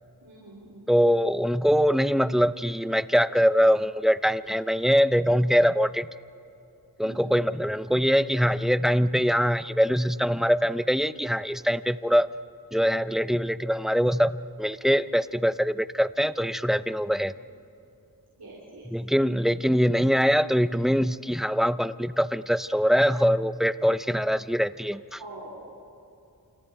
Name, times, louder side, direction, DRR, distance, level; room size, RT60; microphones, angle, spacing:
voice 1, 0.2-0.9 7.0-7.4 18.4-18.9 25.2-25.8, right 2 dB, 85° right, -5 dB, 4.2 m, -45 dB
voice 2, 0.9-6.1 7.0-12.3 12.7-14.3 14.6-17.3 18.9-25.2, equal, ahead, 14 dB, 0.6 m, -23 dB
29.5 x 28.0 x 4.6 m, 2.7 s
wide cardioid pair, 65°, 37 cm